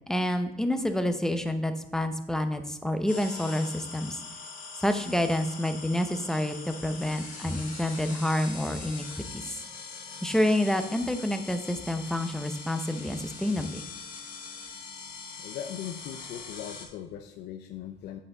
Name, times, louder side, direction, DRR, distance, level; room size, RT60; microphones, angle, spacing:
voice 1, 0.1-4.2 4.8-9.6 10.2-13.8, left 1 dB, 5° left, 8 dB, 0.7 m, -28 dB
sound 1, 3.1-16.9, left 4 dB, 55° left, 2.0 m, -42 dB
voice 2, 15.4-18.2, left 10 dB, 75° left, 6 dB, 0.5 m, -39 dB
8.3 x 5.6 x 3.9 m, 0.93 s
cardioid pair, 110°, 17 cm